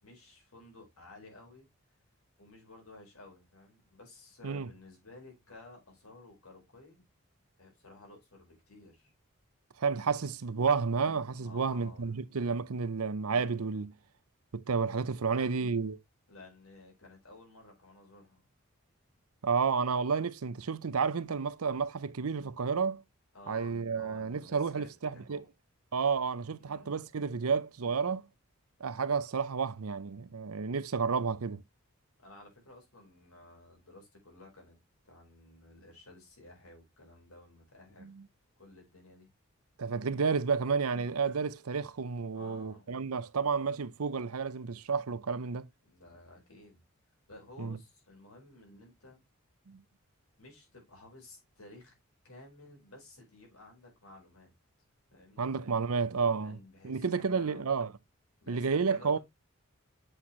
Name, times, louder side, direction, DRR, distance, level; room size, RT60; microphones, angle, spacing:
voice 1, 0.0-1.7 2.4-7.0 7.6-9.1 11.4-12.2 15.2-15.6 16.3-18.4 23.3-25.5 26.6-27.0 32.2-34.8 35.0-38.1 38.6-39.3 42.3-42.9 45.8-46.8 47.3-49.2 50.4-52.0 52.2-54.5 55.1-55.5 56.4-57.7 58.4-59.2, left 2 dB, 85° left, 4.9 m, -54 dB
voice 2, 9.8-13.9 14.5-16.0 19.4-23.0 23.5-25.4 25.9-28.3 28.8-31.6 38.0-38.2 39.8-45.7 47.6-47.8 49.7-49.8 55.4-56.6 56.8-57.9 58.5-59.2, right 5 dB, 90° right, 0.6 m, -31 dB
8.1 x 5.8 x 3.1 m
head